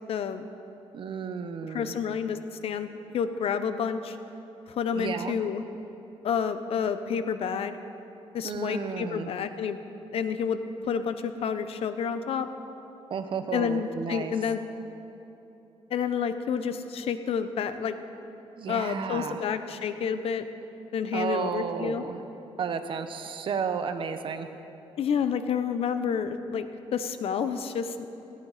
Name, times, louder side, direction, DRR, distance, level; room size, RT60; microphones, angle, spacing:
voice 1, 0.1-0.5 1.7-2.9 3.1-4.2 4.7-5.6 6.2-7.8 8.3-9.8 10.1-12.5 13.5-14.6 15.9-17.9 18.7-20.4 20.9-22.0 25.0-28.1, left 7 dB, 70° left, 10 dB, 0.8 m, -29 dB
voice 2, 0.9-1.9 4.9-5.4 8.4-9.3 13.1-14.3 18.6-19.5 21.1-22.2 22.6-24.5, right 6 dB, 55° right, 8 dB, 1.0 m, -32 dB
18.0 x 16.5 x 4.1 m, 3.0 s
cardioid pair, 145°, 10 cm